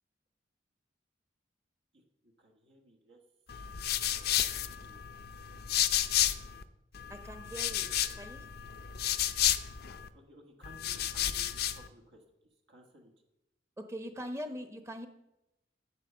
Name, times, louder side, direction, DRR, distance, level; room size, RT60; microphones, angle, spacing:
voice 1, 2.2-3.2 4.2-5.0 10.1-12.2 12.7-13.1, equal, 70° right, 2 dB, 1.5 m, -58 dB
sound 1, 3.5-6.6 6.9-10.1 10.6-11.9, left 11 dB, 60° left, 0.6 m, -32 dB
voice 2, 7.1-8.5 13.8-15.1, equal, 15° right, 7 dB, 0.9 m, -42 dB
9.1 x 7.9 x 6.8 m, 0.93 s
head